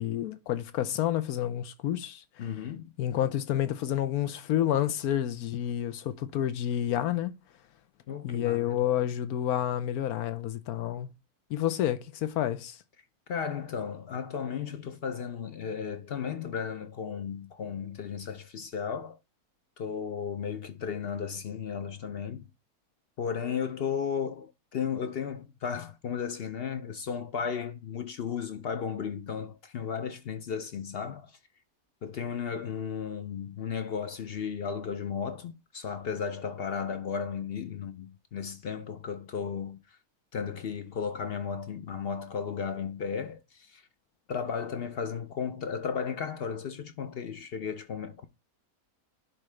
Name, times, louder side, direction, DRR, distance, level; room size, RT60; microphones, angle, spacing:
voice 1, 0.0-2.5 3.0-7.3 8.2-11.1 11.5-12.8, left 11 dB, 90° left, 1.2 m, -29 dB
voice 2, 2.4-2.9 8.1-8.8 13.3-19.2 19.8-22.5 23.2-31.4 32.0-40.0 40.3-43.8 44.3-48.3, left 7 dB, 60° left, 0.6 m, -34 dB
11.0 x 3.8 x 3.2 m
omnidirectional pair, 1.5 m